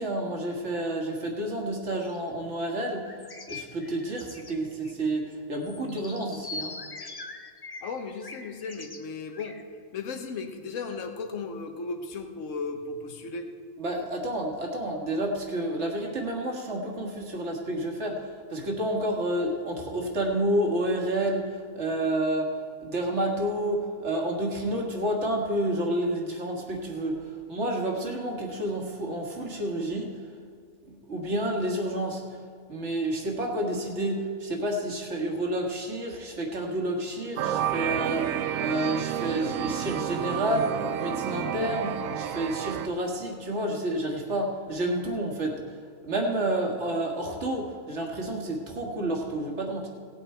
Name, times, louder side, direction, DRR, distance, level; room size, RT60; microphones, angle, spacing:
voice 1, 0.0-3.1 3.5-6.8 13.8-22.5 22.8-30.1 30.9-32.2 32.7-45.6 46.0-49.9, right 1 dB, 55° right, 1 dB, 1.9 m, -30 dB
sound 1, 1.8-2.2 3.1-5.0 5.3-5.4 5.6-9.0 9.3-9.6, left 3 dB, 20° left, 0.7 m, -42 dB
voice 2, 7.8-9.6 9.9-13.5, left 4 dB, 65° left, 6 dB, 1.4 m, -35 dB
sound 2, 37.4-42.9, right 10 dB, 75° right, 1.0 m, -30 dB
17.5 x 8.6 x 4.4 m, 2.1 s
omnidirectional pair, 1.5 m